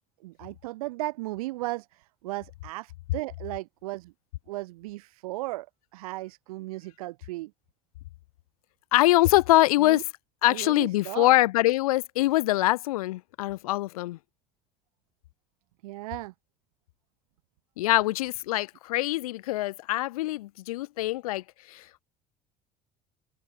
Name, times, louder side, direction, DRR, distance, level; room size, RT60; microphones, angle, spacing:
voice 1, 0.2-4.1 4.5-5.7 5.9-7.5 9.8-10.0 10.4-11.3 15.8-16.3, right 19 dB, 85° right, 1.5 m, -36 dB
voice 2, 8.9-10.0 10.4-14.2 17.8-22.0, left 17 dB, 90° left, 0.8 m, -24 dB
hypercardioid pair, 80°, 18 cm